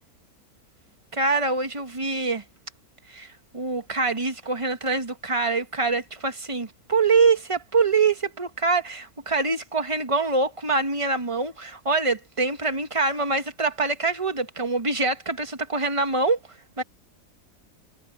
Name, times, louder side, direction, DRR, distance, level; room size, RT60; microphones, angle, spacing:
voice 1, 1.1-2.4 3.1-3.3 3.5-16.4 16.8-16.9, right 4 dB, 25° right, 1.3 m, -24 dB
omnidirectional pair, 1.5 m